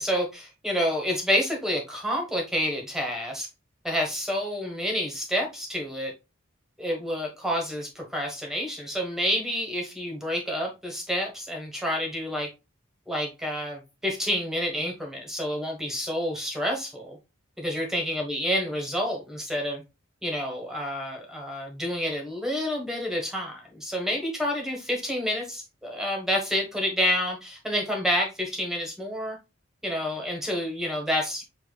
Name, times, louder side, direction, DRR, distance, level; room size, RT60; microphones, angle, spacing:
voice 1, 0.0-3.5 3.8-6.1 6.8-12.5 13.1-17.2 17.6-19.8 20.2-29.4 29.8-31.4, equal, ahead, 1 dB, 1.2 m, -29 dB
6.7 x 2.8 x 2.2 m, 0.26 s
head